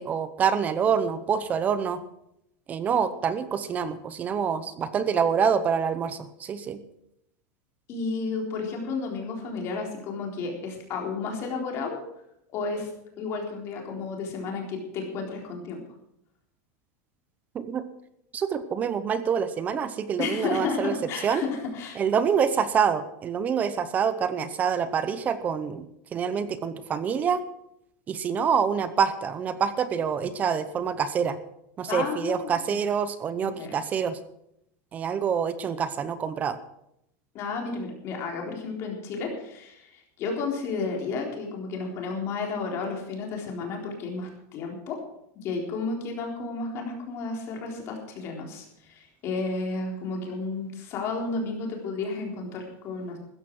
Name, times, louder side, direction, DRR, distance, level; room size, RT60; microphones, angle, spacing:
voice 1, 0.0-2.0 2.7-6.8 17.5-17.8 18.3-20.9 21.2-21.4 22.0-25.9 26.1-27.4 28.1-31.4 31.8-34.2 34.9-36.6, right 7 dB, 15° right, 13 dB, 0.8 m, -26 dB
voice 2, 7.9-12.0 12.5-12.9 13.2-15.8 20.2-22.0 31.9-32.8 33.4-33.8 37.3-45.0 45.4-53.2, left 4 dB, 30° left, 1 dB, 3.9 m, -32 dB
15.5 x 14.0 x 4.7 m, 0.78 s
supercardioid pair, 180°, 9 cm